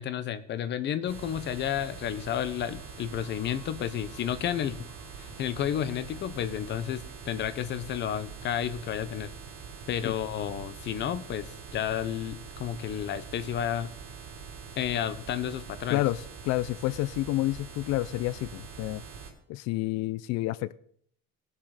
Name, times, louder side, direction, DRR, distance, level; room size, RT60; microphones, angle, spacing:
voice 1, 0.0-4.8 5.2-9.3 9.9-13.9 14.8-16.0, left 10 dB, 35° left, 0.8 m, -31 dB
sound 1, 0.8-7.1, left 2 dB, 15° left, 2.9 m, -57 dB
sound 2, 1.1-19.3, right 6 dB, 90° right, 3.8 m, -44 dB
voice 2, 15.9-19.0 19.5-20.7, left 17 dB, 60° left, 0.5 m, -29 dB
19.0 x 7.4 x 4.9 m
cardioid pair, 175°, 30 cm